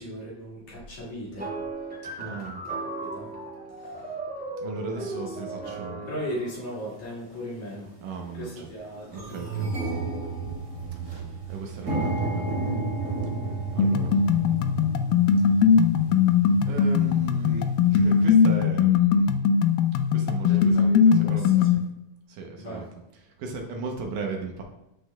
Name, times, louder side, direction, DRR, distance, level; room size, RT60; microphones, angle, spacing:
voice 1, 0.0-1.5 2.2-2.4 3.0-3.3 3.8-4.1 4.9-5.4 5.7-7.9 8.3-9.9 10.4-10.5 19.5-19.6 20.4-21.8 22.6-22.9, equal, 60° left, -6 dB, 3.2 m, -38 dB
sound 1, 1.4-6.6, right 2 dB, 5° right, 0.8 m, -36 dB
voice 2, 2.2-2.6 4.6-6.1 8.0-8.7 9.1-9.7 11.5-12.6 13.7-14.1 16.7-19.4 20.1-21.7 22.3-22.9 23.2-24.6, right 4 dB, 75° right, 2 dB, 2.2 m, -36 dB
sound 2, 6.8-6.9 7.6-7.9 8.3-8.4 8.6-18.3, right 3 dB, 20° right, 2.1 m, -32 dB
sound 3, 13.8-21.8, left 6 dB, 90° left, 2.3 m, -20 dB
11.5 x 5.1 x 2.2 m, 0.89 s
omnidirectional pair, 4.0 m